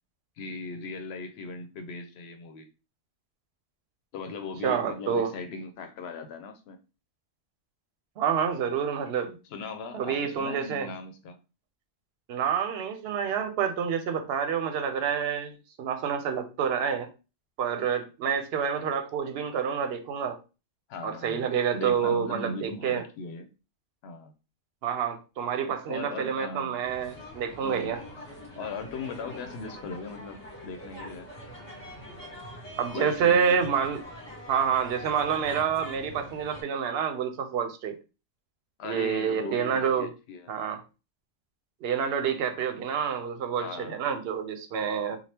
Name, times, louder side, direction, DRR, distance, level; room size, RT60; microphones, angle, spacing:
voice 1, 0.4-2.7 4.1-6.8 9.5-11.4 20.9-23.5 24.0-24.3 25.9-26.8 27.6-27.9 28.6-31.3 32.9-33.6 38.8-40.5 43.6-44.0, left 4 dB, 85° left, 0.8 m, -38 dB
voice 2, 4.6-5.3 8.2-9.4 9.9-10.9 12.3-17.1 17.6-20.4 21.0-23.0 24.8-28.0 32.8-34.0 34.5-38.0 38.8-40.1 40.5-40.8 41.8-45.2, right 7 dB, 75° right, 0.8 m, -28 dB
sound 1, 26.8-36.6, equal, 25° left, 1.7 m, -44 dB
3.3 x 2.2 x 2.8 m
omnidirectional pair, 1.0 m